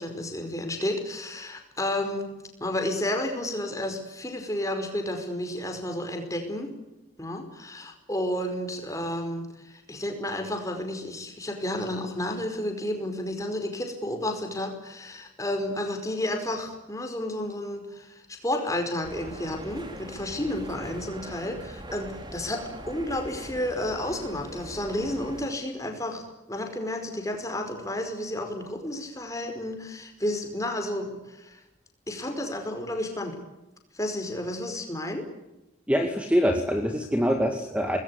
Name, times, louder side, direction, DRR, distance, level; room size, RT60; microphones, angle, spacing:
voice 1, 0.0-2.3 2.6-6.7 7.2-26.2 26.5-31.6 32.1-33.4 33.9-35.3 37.3-37.4, left 1 dB, 15° left, 5 dB, 5.0 m, -31 dB
sound 1, 19.0-25.5, right 1 dB, 20° right, 3.1 m, -42 dB
voice 2, 35.9-38.0, equal, 5° right, 5 dB, 2.0 m, -24 dB
25.5 x 20.5 x 9.9 m, 0.97 s
head